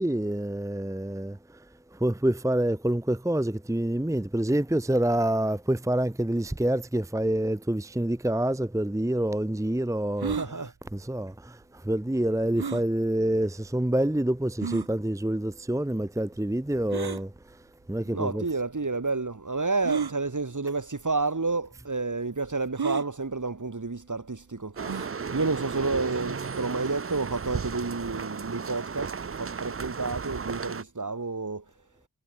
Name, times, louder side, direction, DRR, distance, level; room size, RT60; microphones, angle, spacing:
voice 1, 0.0-1.6 1.9-10.4 10.9-17.6 17.9-18.4, right 1 dB, 10° right, 0.9 m, -27 dB
voice 2, 10.2-10.7 18.1-24.7 25.3-31.6, right 3 dB, 55° right, 3.3 m, -30 dB
sound 1, 10.2-10.5 12.6-12.9 13.7-13.8 14.6-14.9 16.9-17.2 18.3-18.4 19.8-20.1 21.1-21.2 21.5-21.6 22.8-23.1 24.8-25.1, right 6 dB, 85° right, 1.4 m, -31 dB
sound 2, 24.8-30.8, right 5 dB, 35° right, 0.6 m, -34 dB
wide cardioid pair, 55°, 37 cm